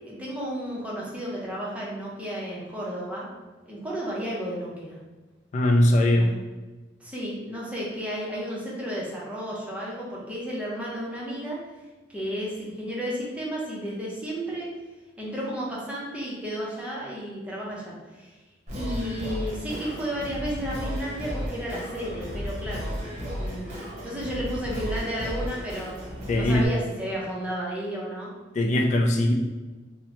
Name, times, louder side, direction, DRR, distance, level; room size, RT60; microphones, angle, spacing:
voice 1, 0.0-3.3 3.7-5.0 6.1-6.3 7.0-11.6 12.1-14.7 15.2-18.4 18.7-23.0 23.3-25.9 26.3-28.3, equal, 5° right, -5 dB, 0.6 m, -33 dB
voice 2, 5.5-6.3 26.3-26.7 28.5-29.3, left 1 dB, 40° left, 2 dB, 0.3 m, -20 dB
Singing, 18.7-26.7, equal, 40° right, 0.8 m, -34 dB
2.8 x 2.1 x 2.8 m, 1.2 s
head